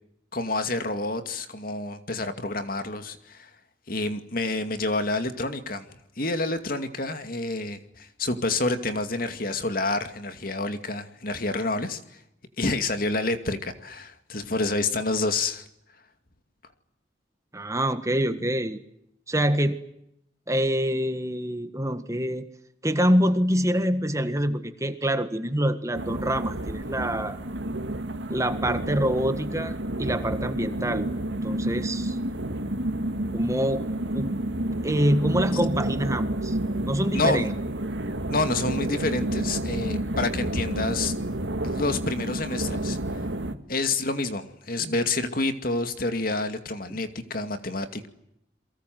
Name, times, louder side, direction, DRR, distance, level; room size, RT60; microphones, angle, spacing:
voice 1, 0.3-3.5 3.9-5.9 6.2-12.2 12.6-15.7 37.1-37.5 38.3-41.1 41.6-43.2 43.7-48.1, left 2 dB, 50° left, 2.4 m, -28 dB
voice 2, 17.5-18.8 19.3-19.8 20.5-22.4 22.8-27.4 28.3-31.1 31.4-32.2 33.3-33.9 34.1-34.3 34.8-36.6 36.8-37.5 43.4-43.6 44.8-44.9 46.9-47.0, equal, 15° right, 1.6 m, -25 dB
sound 1, 25.9-43.5, right 1 dB, 85° right, 2.1 m, -30 dB
29.0 x 23.0 x 7.9 m
head